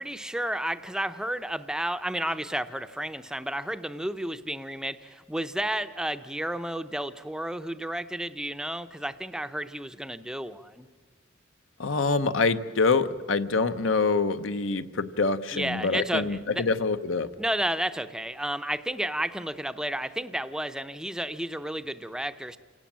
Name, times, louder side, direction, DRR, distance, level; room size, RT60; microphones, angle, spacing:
voice 1, 0.0-10.9 15.5-16.6 17.4-22.6, right 1 dB, 5° right, 10 dB, 0.6 m, -32 dB
voice 2, 11.8-17.3, left 4 dB, 65° left, 12 dB, 0.8 m, -25 dB
28.5 x 17.5 x 7.4 m, 1.5 s
head